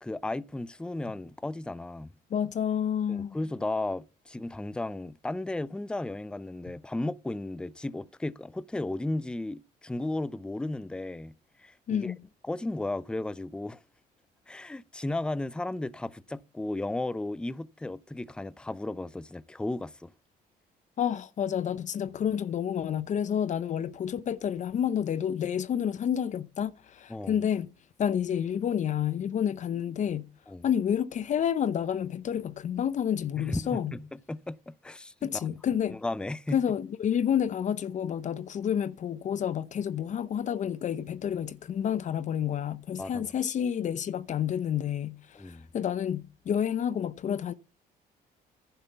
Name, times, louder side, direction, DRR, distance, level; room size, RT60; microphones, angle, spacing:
voice 1, 0.0-2.1 3.1-11.3 11.6-12.1 12.4-13.8 14.5-20.1 27.1-27.4 30.5-30.7 33.4-35.5 35.9-36.6 43.0-43.3 45.4-45.7, left 2 dB, 5° left, 0.5 m, -34 dB
voice 2, 2.3-3.4 11.9-12.2 21.0-27.7 28.0-30.3 30.6-33.9 35.2-36.0 36.5-47.5, left 9 dB, 45° left, 0.7 m, -29 dB
11.0 x 5.6 x 6.8 m
cardioid pair, 110°, 17 cm